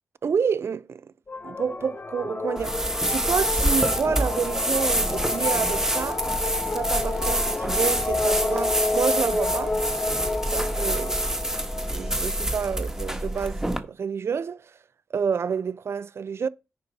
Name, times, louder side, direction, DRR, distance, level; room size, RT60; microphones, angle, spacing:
voice 1, 0.2-1.1 1.4-6.2 6.7-9.8 10.5-11.5 11.9-14.7 15.1-16.5, right 6 dB, 60° right, 0.5 m, -29 dB
sound 1, 1.3-13.1, left 3 dB, 35° left, 0.9 m, -30 dB
sound 2, 2.6-13.8, right 1 dB, 10° right, 1.2 m, -26 dB
9.7 x 5.3 x 4.1 m
cardioid pair, 75°, 5 cm